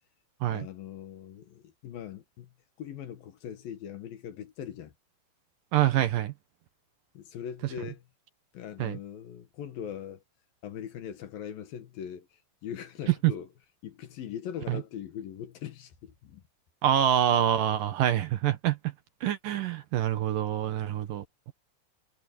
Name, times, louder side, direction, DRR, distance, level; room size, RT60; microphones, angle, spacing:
voice 1, 0.5-2.5 2.8-4.9 7.1-8.0 8.5-10.2 10.6-12.3 12.6-13.5 13.8-16.4, left 9 dB, 70° left, 3.2 m, -40 dB
voice 2, 5.7-6.3 8.8-9.0 13.2-13.3 14.7-14.8 16.8-18.8 19.2-21.5, right 11 dB, 65° right, 2.7 m, -26 dB
omnidirectional pair, 4.5 m